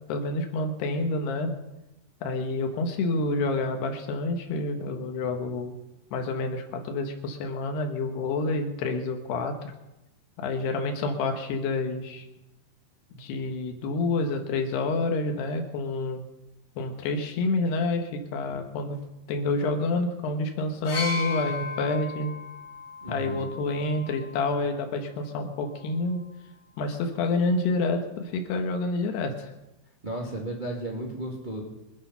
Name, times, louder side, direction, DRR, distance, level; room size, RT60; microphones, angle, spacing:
voice 1, 0.1-1.5 2.2-5.8 6.1-9.7 10.4-12.3 13.2-16.3 16.8-19.0 19.3-22.3 23.1-26.2 26.8-29.5, left 3 dB, 90° left, 5 dB, 3.5 m, -28 dB
sound 1, 20.9-24.7 25.7-25.9, left 4 dB, 45° left, 4.4 m, -36 dB
voice 2, 23.0-23.4 30.0-31.6, right 1 dB, 20° right, -2 dB, 1.5 m, -34 dB
24.5 x 9.0 x 5.7 m, 0.97 s
omnidirectional pair, 4.5 m